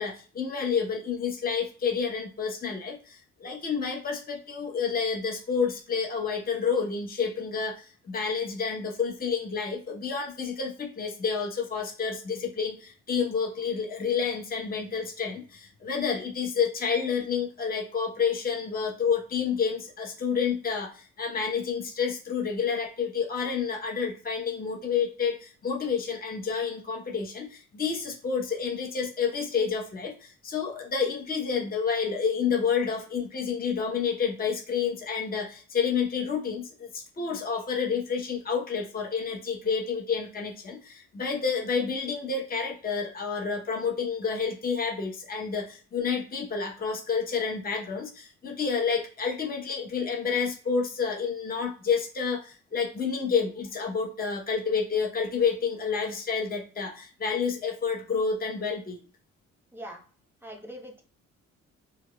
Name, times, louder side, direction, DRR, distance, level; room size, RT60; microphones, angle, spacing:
voice 1, 0.0-59.0, left 6 dB, 30° left, 0 dB, 0.8 m, -29 dB
voice 2, 59.7-60.0 60.4-61.0, equal, 5° right, 2 dB, 1.1 m, -42 dB
4.5 x 2.4 x 2.2 m, 0.39 s
supercardioid pair, 60°, 30 cm